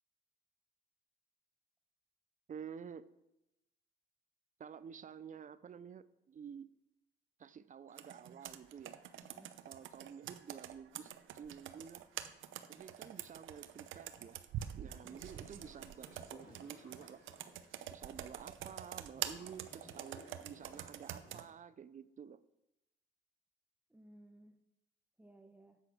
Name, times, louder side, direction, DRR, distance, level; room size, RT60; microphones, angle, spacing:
voice 1, 2.5-3.1 4.6-6.7 7.4-9.0 9.6-12.1 12.7-14.4 14.7-17.2 17.9-22.4, right 7 dB, 40° right, 16 dB, 0.5 m, -51 dB
Computer keyboard, 8.0-21.5, right 11 dB, 80° right, 0.7 m, -46 dB
voice 2, 9.2-9.6 14.8-15.2 23.9-24.6 25.2-25.8, right 1 dB, 10° right, 7 dB, 0.9 m, -60 dB
sound 1, 15.0-17.7 18.3-18.4 19.1-21.3, left 1 dB, 50° left, 4.8 m, -59 dB
8.3 x 8.0 x 6.3 m, 0.91 s
cardioid pair, 90°, 20 cm